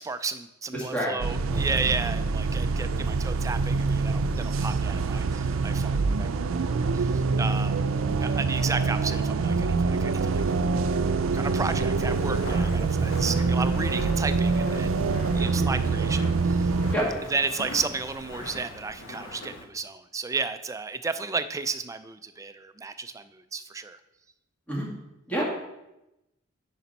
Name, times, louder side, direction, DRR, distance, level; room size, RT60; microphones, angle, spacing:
voice 1, 0.0-10.4 11.2-16.8 17.3-24.0, right 4 dB, 15° right, 11 dB, 0.3 m, -33 dB
voice 2, 0.7-1.8 15.5-15.8 16.9-17.1 24.7-24.9 25.3-25.4, right 1 dB, 5° left, -4 dB, 2.0 m, -29 dB
sound 1, 1.2-17.0, right 4 dB, 90° right, 0.5 m, -25 dB
Walk footsteps, 12.0-19.7, left 1 dB, 70° left, 1.2 m, -41 dB
10.0 x 5.2 x 4.1 m, 0.93 s
head